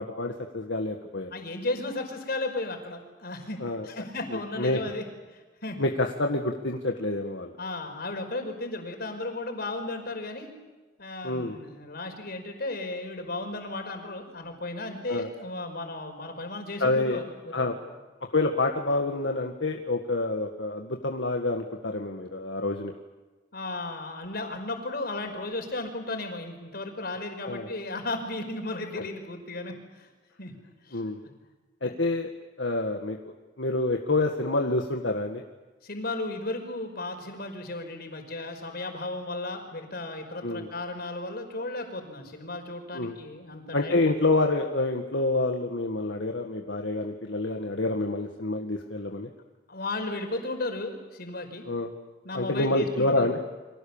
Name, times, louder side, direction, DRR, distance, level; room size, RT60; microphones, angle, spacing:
voice 1, 0.0-1.3 3.6-3.9 4.3-4.8 5.8-7.5 11.2-11.6 15.1-15.3 16.8-17.2 17.5-17.8 18.3-22.9 27.5-27.7 30.9-31.2 31.8-32.3 32.6-33.2 33.6-35.4 40.4-40.7 42.9-43.2 43.7-49.3 51.7-51.9 52.3-53.4, left 2 dB, 75° left, 3 dB, 1.8 m, -27 dB
voice 2, 1.3-5.0 5.3-5.8 7.6-10.5 11.0-17.8 23.5-30.1 30.4-30.5 30.8-31.0 31.8-31.9 35.8-44.2 49.7-51.7 52.2-53.3, left 2 dB, 60° left, 5 dB, 5.3 m, -35 dB
30.0 x 25.0 x 7.3 m, 1.2 s
head